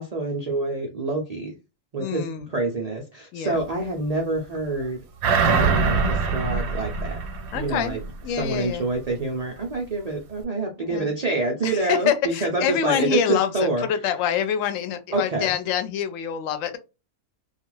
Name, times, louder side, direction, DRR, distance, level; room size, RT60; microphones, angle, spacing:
voice 1, 0.0-1.5 1.9-5.0 5.4-7.2 7.5-8.0 8.4-13.9 15.1-15.5, right 2 dB, 75° right, 0.3 m, -27 dB
voice 2, 2.0-2.5 3.3-3.6 7.5-8.8 10.8-11.1 11.6-16.8, left 9 dB, 70° left, 0.9 m, -26 dB
sound 1, 5.2-8.1 8.5-8.6, right 4 dB, 90° right, 1.1 m, -23 dB
2.4 x 2.3 x 3.1 m
omnidirectional pair, 1.5 m